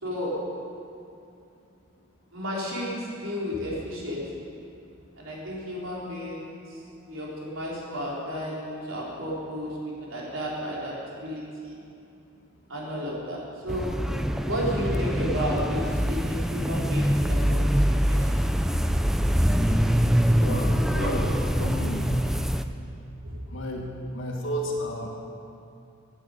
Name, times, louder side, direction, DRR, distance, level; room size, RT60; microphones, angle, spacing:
voice 1, 0.0-0.3 2.3-4.2 5.2-6.6 7.0-9.7 10.1-10.9 11.2-11.8 12.7-13.4 13.6-13.9 14.5-17.8 18.0-18.3 19.8-19.9 21.0-21.2 23.2-23.4, equal, 70° right, -5 dB, 4.2 m, -32 dB
sound 1, 13.7-22.7, equal, ahead, 0.4 m, -24 dB
voice 2, 20.4-21.3 21.6-22.1 23.5-25.1, equal, 65° left, 0 dB, 2.1 m, -32 dB
11.0 x 10.5 x 8.8 m, 2.6 s
head